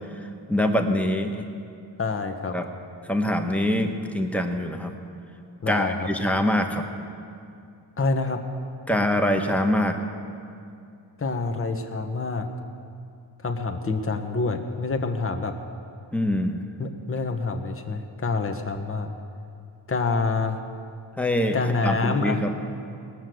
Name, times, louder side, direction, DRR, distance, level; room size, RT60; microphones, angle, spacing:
voice 1, 0.2-1.4 2.5-2.7 3.0-4.9 5.7-6.8 8.9-9.9 16.1-16.6 21.2-22.5, left 1 dB, 5° left, 4 dB, 1.2 m, -24 dB
voice 2, 2.0-2.5 5.6-6.1 8.0-8.4 11.2-12.5 13.4-15.5 16.8-19.1 19.9-20.6 21.5-22.4, left 4 dB, 25° left, 5 dB, 1.2 m, -27 dB
19.0 x 6.5 x 7.7 m, 2.5 s
cardioid pair, 75°, 48 cm